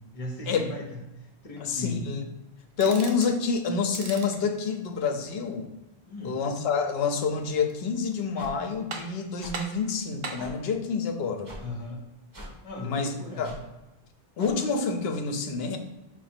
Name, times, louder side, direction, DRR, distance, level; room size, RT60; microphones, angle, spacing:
voice 1, 0.1-2.1 6.1-6.4 11.6-12.0 12.6-13.5, left 2 dB, 40° left, 0 dB, 0.9 m, -37 dB
voice 2, 1.6-2.2 2.8-5.7 6.2-11.5 12.8-13.5 14.4-15.8, left 5 dB, 75° left, 5 dB, 0.8 m, -28 dB
sound 1, 2.7-3.4 3.8-4.4 7.4-8.0 8.4-8.5 8.9-9.3 9.5-10.5, right 4 dB, 70° right, 0.8 m, -39 dB
sound 2, 8.3-8.5 9.4-9.5 10.4-10.5 11.4-11.6 12.3-12.5 13.4-13.6 14.4-14.5, equal, 20° right, 0.8 m, -42 dB
4.8 x 2.2 x 4.3 m, 0.99 s
omnidirectional pair, 1.1 m